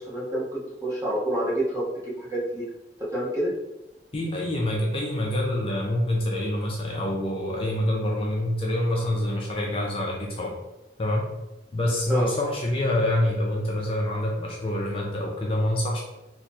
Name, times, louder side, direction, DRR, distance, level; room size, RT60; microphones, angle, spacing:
voice 1, 0.0-2.6 3.1-3.5 12.1-12.3, right 1 dB, 20° right, -7 dB, 1.1 m, -28 dB
voice 2, 4.1-10.5 11.0-11.3 11.7-16.0, left 1 dB, 30° left, -2 dB, 0.5 m, -26 dB
3.0 x 2.2 x 4.1 m, 0.95 s
head